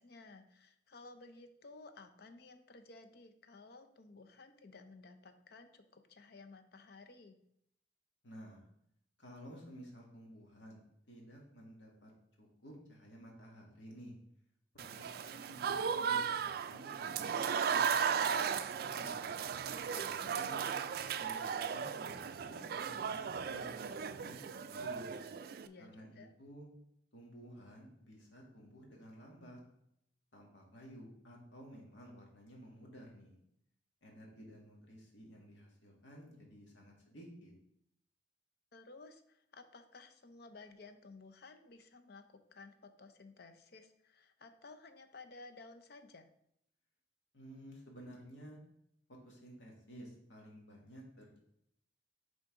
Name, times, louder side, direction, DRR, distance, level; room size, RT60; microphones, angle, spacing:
voice 1, 0.0-7.4 19.6-20.6 25.6-26.3 38.7-46.3, left 3 dB, 60° left, 8 dB, 0.7 m, -56 dB
voice 2, 8.2-8.6 9.2-12.1 12.4-14.2 14.7-17.4 17.7-19.1 19.7-20.7 21.2-25.1 25.8-26.7 27.1-29.6 30.3-33.4 34.0-37.5 47.3-48.6 49.1-51.4, equal, 80° left, -1 dB, 1.8 m, -54 dB
Applause / Crowd, 14.8-25.7, right 7 dB, 55° right, 0.3 m, -36 dB
9.6 x 3.9 x 3.7 m, 0.74 s
head